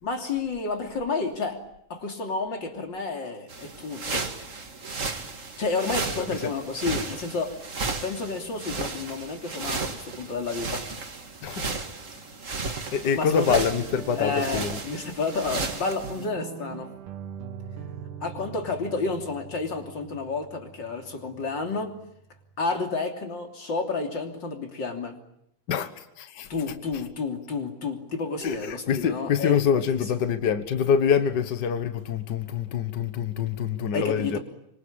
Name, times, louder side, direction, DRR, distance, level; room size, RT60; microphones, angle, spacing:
voice 1, 0.0-1.6 1.9-4.3 5.6-7.6 8.0-10.8 12.5-12.7 13.1-13.6 14.2-16.9 18.2-22.0 22.6-25.2 26.5-29.6 33.9-34.4, left 4 dB, 35° left, 3.5 m, -30 dB
sound 1, 3.5-16.3, right 4 dB, 30° right, 1.9 m, -34 dB
voice 2, 6.2-6.5 11.4-11.8 12.9-14.8 25.7-26.5 28.4-34.4, left 7 dB, 60° left, 1.1 m, -26 dB
Guitar, 13.3-22.8, right 8 dB, 75° right, 3.0 m, -42 dB
25.5 x 25.0 x 8.8 m
omnidirectional pair, 3.7 m